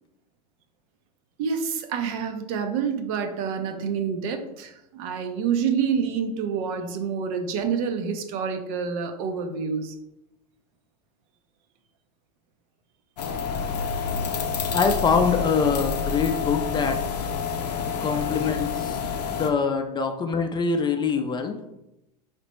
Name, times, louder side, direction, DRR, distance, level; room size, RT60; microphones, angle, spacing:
voice 1, 1.4-9.9 18.0-18.4, right 6 dB, 60° right, 6 dB, 0.6 m, -28 dB
sound 1, 13.2-19.5, left 6 dB, 85° left, 0.5 m, -28 dB
voice 2, 14.7-17.0 18.0-19.0 19.3-21.6, left 5 dB, 20° left, 6 dB, 0.4 m, -24 dB
4.0 x 3.3 x 3.0 m, 0.88 s
hypercardioid pair, 90°, 21 cm